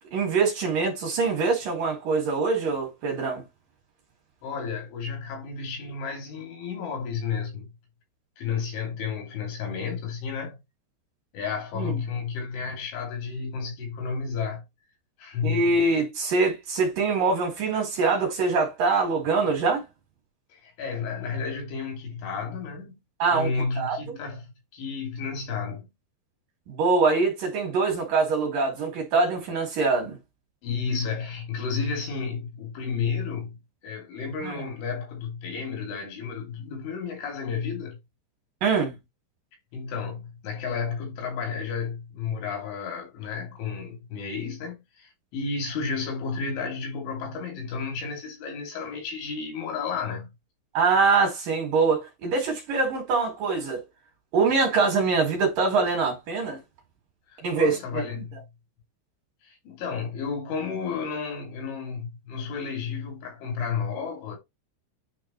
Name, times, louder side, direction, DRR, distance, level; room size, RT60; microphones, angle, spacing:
voice 1, 0.1-3.4 11.7-11.9 15.4-19.8 23.2-23.5 23.8-24.2 26.7-30.2 34.4-34.6 38.6-39.0 50.7-53.8 54.3-56.6 57.4-58.0, right 4 dB, 55° right, 2.9 m, -24 dB
voice 2, 4.4-7.7 8.4-10.6 11.3-14.6 15.2-15.7 20.5-23.0 23.3-24.5 24.7-25.9 30.6-38.0 39.7-50.3 57.3-58.4 59.4-64.4, left 5 dB, 75° left, 5.0 m, -32 dB
9.8 x 4.0 x 3.1 m
omnidirectional pair, 5.5 m